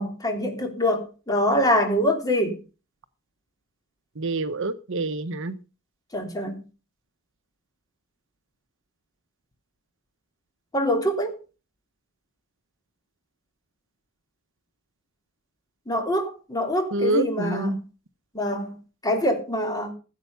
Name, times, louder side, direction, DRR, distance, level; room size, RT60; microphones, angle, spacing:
voice 1, 0.0-2.6 6.1-6.6 10.7-11.4 15.9-17.8 18.3-18.8 19.0-19.9, left 1 dB, 15° left, 3.3 m, -24 dB
voice 2, 4.2-5.6 16.9-17.8, right 2 dB, 60° right, 0.9 m, -26 dB
15.5 x 8.2 x 5.6 m
head